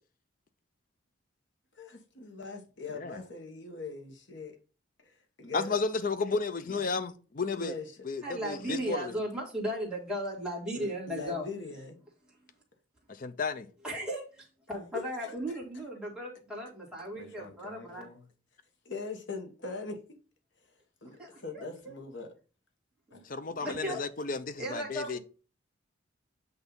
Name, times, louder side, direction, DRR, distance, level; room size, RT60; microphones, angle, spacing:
voice 1, 1.7-4.6 5.0-5.8 7.6-7.9 10.7-12.0 17.1-18.2 18.8-20.0 21.0-22.3 23.1-23.6 23.8-24.0, left 3 dB, 65° left, 1.2 m, -42 dB
voice 2, 5.5-7.7 8.0-9.1 13.2-13.7 23.3-25.2, left 4 dB, 40° left, 0.5 m, -33 dB
voice 3, 8.2-11.5 13.8-18.1 21.2-21.9 23.1-23.2 23.5-24.0 24.6-25.2, equal, 5° right, 1.7 m, -36 dB
8.1 x 2.7 x 5.3 m
head